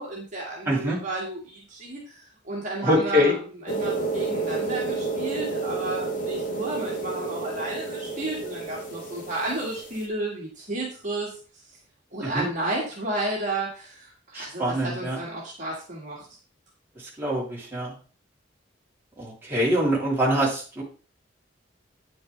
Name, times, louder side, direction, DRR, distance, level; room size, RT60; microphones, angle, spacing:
voice 1, 0.0-3.4 3.6-11.3 12.1-16.3, right 2 dB, 40° right, -4 dB, 2.1 m, -32 dB
voice 2, 0.6-1.0 2.8-3.3 12.2-12.4 14.3-15.2 17.2-17.9 19.2-20.8, equal, 10° right, -6 dB, 3.3 m, -24 dB
sound 1, 3.7-10.0, right 3 dB, 45° left, 1.4 m, -30 dB
9.2 x 6.8 x 3.4 m, 0.38 s
head